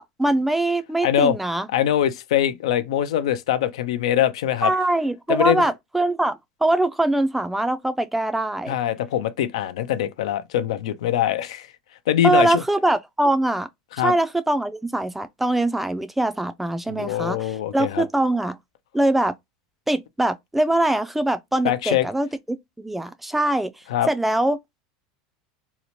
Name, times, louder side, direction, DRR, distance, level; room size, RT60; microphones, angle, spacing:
voice 1, 0.0-1.7 4.6-8.7 12.2-13.7 14.0-18.6 18.9-19.3 19.9-23.7 24.1-24.6, right 1 dB, 5° right, 0.3 m, -23 dB
voice 2, 1.0-1.4 1.7-4.7 5.3-5.7 8.7-11.7 12.1-12.6 14.0-14.1 16.9-18.0 21.6-22.1 23.9-24.1, left 11 dB, 85° left, 0.3 m, -23 dB
2.8 x 2.0 x 2.9 m
supercardioid pair, 115°, 3 cm